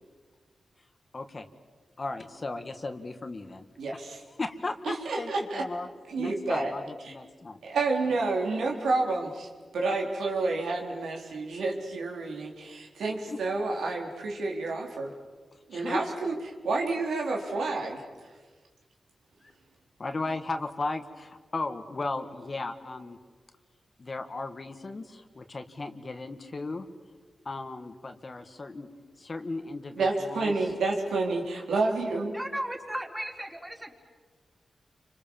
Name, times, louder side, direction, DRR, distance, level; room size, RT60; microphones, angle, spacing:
voice 1, 1.1-1.5 2.0-3.6 3.9-4.0 4.3-5.9 6.2-7.6 13.3-13.4 15.7-16.0 19.4-19.5 20.0-23.2 24.0-26.9 27.5-28.9 29.2-30.5, left 3 dB, 45° left, 7 dB, 2.1 m, -36 dB
voice 2, 3.8-4.2 4.8-5.7 6.1-6.7 7.0-7.1 7.6-9.5 9.7-15.1 15.7-16.3 16.6-18.0 30.0-32.4, right 3 dB, 90° right, 0 dB, 3.9 m, -29 dB
voice 3, 32.3-33.9, right 1 dB, 10° right, 2 dB, 4.3 m, -35 dB
29.5 x 26.0 x 7.3 m, 1.4 s
cardioid pair, 65°, 0 cm